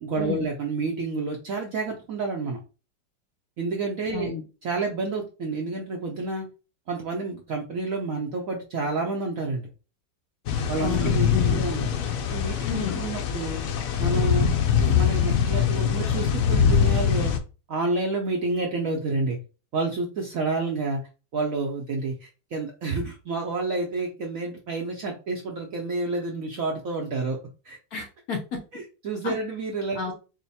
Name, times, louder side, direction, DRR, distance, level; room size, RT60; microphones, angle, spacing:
voice 1, 0.0-2.6 3.6-4.3 4.6-6.5 6.9-9.7 10.7-11.9 12.3-13.6 14.0-14.5 14.8-17.3 17.7-19.4 19.7-21.0 21.3-27.4 27.6-27.8 28.7-30.0, right 3 dB, 65° right, 0 dB, 0.8 m, -29 dB
sound 1, 10.5-17.4, left 7 dB, 80° left, 0.7 m, -23 dB
voice 2, 10.8-11.6 12.6-13.0 27.9-28.6 29.2-29.3 29.9-30.1, left 6 dB, 60° left, 1 dB, 1.1 m, -31 dB
3.9 x 2.2 x 4.0 m, 0.33 s
omnidirectional pair, 2.1 m